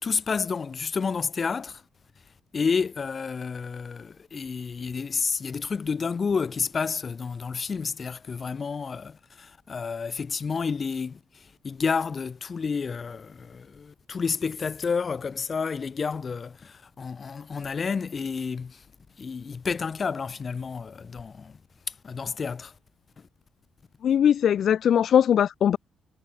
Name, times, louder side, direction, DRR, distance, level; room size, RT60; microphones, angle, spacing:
voice 1, 0.0-1.8 2.5-18.8 19.2-21.6 21.9-22.7 23.2-23.3, left 5 dB, 40° left, 2.7 m, -30 dB
voice 2, 24.0-25.8, left 9 dB, 60° left, 0.8 m, -20 dB
cardioid pair, 90°, 0 cm